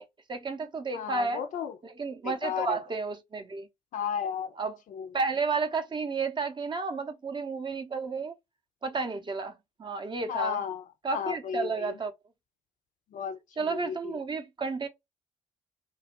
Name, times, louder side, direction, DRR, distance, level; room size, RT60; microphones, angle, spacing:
voice 1, 0.0-1.4 1.8-3.7 4.6-4.8 5.1-8.3 8.8-10.6 11.0-12.1 13.6-14.9, right 4 dB, 30° right, 0.6 m, -32 dB
voice 2, 0.9-1.7 2.2-2.8 3.9-4.5 4.9-5.1 10.3-10.8 11.1-11.9 13.1-14.2, left 8 dB, 50° left, 0.5 m, -33 dB
2.3 x 2.1 x 2.8 m
figure-of-eight pair, 45°, 17 cm